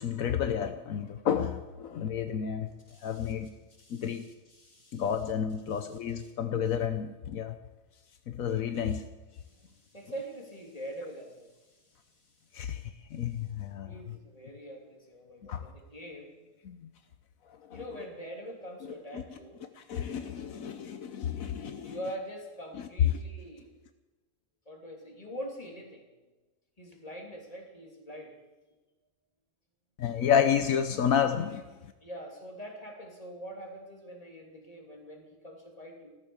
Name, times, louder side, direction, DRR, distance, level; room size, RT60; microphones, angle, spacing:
voice 1, 0.0-2.7 3.0-3.6 3.9-4.2 4.9-7.5 8.3-9.0 12.5-14.2 15.5-15.7 16.6-16.8 17.7-17.8 19.1-19.2 19.8-22.0 22.7-22.9 30.0-31.6, left 8 dB, 80° left, 8 dB, 1.3 m, -30 dB
voice 2, 2.9-3.3 3.8-5.0 5.7-6.3 9.4-12.1 13.8-16.4 17.7-19.6 21.8-23.7 24.7-26.0 26.8-28.5 32.0-36.2, equal, 25° left, 0 dB, 3.1 m, -44 dB
14.5 x 14.0 x 7.1 m, 1.1 s
omnidirectional pair, 1.4 m